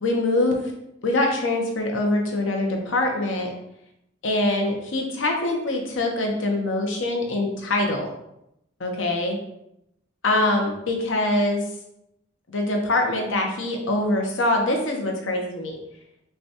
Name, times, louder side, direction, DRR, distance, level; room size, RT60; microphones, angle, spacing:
voice 1, 0.0-0.7 1.0-3.5 4.2-8.1 8.8-9.4 10.2-11.6 12.5-15.8, left 2 dB, 90° left, 1 dB, 0.8 m, -24 dB
5.7 x 2.3 x 2.9 m, 0.82 s
head